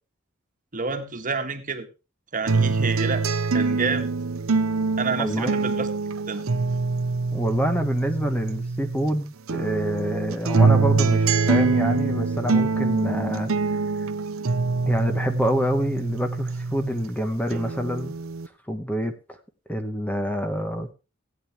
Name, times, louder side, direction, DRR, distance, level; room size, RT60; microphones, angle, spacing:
voice 1, 0.7-1.9 2.3-3.2 3.5-4.1 5.0-5.9 6.3-6.4, right 4 dB, 40° right, 6 dB, 1.6 m, -28 dB
sound 1, 2.5-9.1 9.5-17.1 17.5-18.5, right 4 dB, 80° right, 0.8 m, -24 dB
voice 2, 5.2-5.5 7.3-13.8 14.9-18.1 18.7-19.4 19.7-20.9, equal, 10° left, 7 dB, 1.1 m, -27 dB
16.0 x 9.1 x 3.4 m, 0.31 s
head